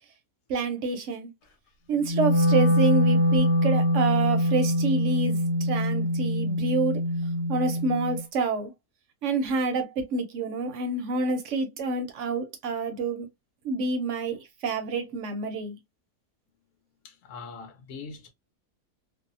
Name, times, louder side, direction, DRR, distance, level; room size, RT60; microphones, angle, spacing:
voice 1, 0.5-1.3 1.9-7.0 7.5-8.7 9.2-13.3 13.6-15.8, right 3 dB, 65° right, 0.7 m, -28 dB
Wind instrument woodwind instrument, 2.0-8.2, equal, 85° left, 1.2 m, -24 dB
voice 2, 17.0-18.3, left 4 dB, 65° left, 0.9 m, -42 dB
2.6 x 2.0 x 2.5 m
omnidirectional pair, 1.7 m